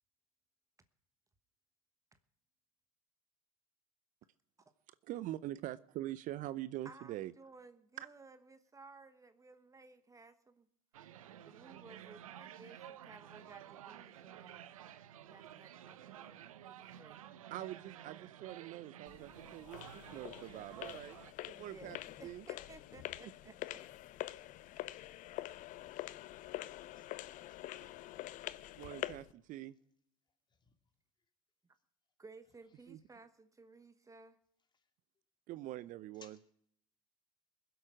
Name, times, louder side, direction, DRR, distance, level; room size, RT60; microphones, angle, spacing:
voice 1, 5.1-7.3 17.5-21.2 21.5-22.0 22.2-22.4 28.8-29.7 32.9-33.0 35.5-36.4, right 14 dB, 50° right, 0.6 m, -44 dB
voice 2, 6.8-10.7 11.4-14.6 15.3-17.2 21.5-23.8 32.2-34.4, right 3 dB, 20° right, 1.1 m, -58 dB
sound 1, 10.9-21.3, right 10 dB, 85° right, 0.7 m, -52 dB
sound 2, 19.1-29.3, left 15 dB, 50° left, 0.6 m, -46 dB
voice 3, 36.1-36.4, left 5 dB, 25° left, 2.4 m, -66 dB
21.0 x 7.9 x 6.2 m
hypercardioid pair, 75°, 17 cm